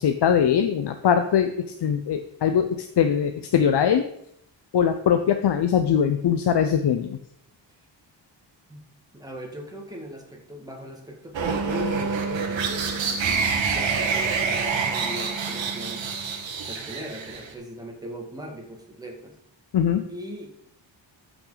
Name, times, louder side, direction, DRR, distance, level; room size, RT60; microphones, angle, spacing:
voice 1, 0.0-4.1 4.7-7.2 19.7-20.1, left 8 dB, 65° left, 8 dB, 0.7 m, -21 dB
voice 2, 9.1-16.1 16.6-19.4 20.1-20.5, equal, 10° right, 0 dB, 2.0 m, -39 dB
sound 1, 11.3-17.5, right 5 dB, 80° right, 1.7 m, -27 dB
Wind instrument woodwind instrument, 11.4-16.5, right 3 dB, 45° right, 1.0 m, -35 dB
13.0 x 6.0 x 4.0 m, 0.73 s
wide cardioid pair, 135°, 44 cm